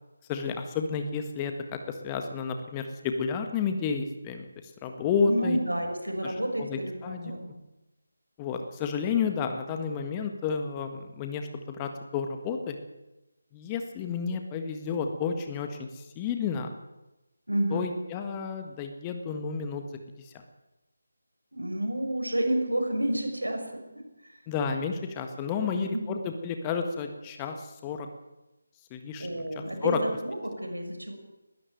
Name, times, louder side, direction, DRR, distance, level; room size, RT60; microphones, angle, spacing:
voice 1, 0.3-4.4 4.8-5.6 6.2-7.3 8.4-12.8 13.5-16.7 17.7-20.4 24.5-28.1 28.9-29.3 29.8-30.0, left 6 dB, 15° left, 6 dB, 1.6 m, -31 dB
voice 2, 5.3-7.5 17.5-17.9 21.5-24.4 25.6-26.2 29.2-31.2, right 1 dB, 80° right, 4 dB, 5.8 m, -30 dB
21.0 x 13.5 x 9.1 m, 0.99 s
figure-of-eight pair, 155°, 0 cm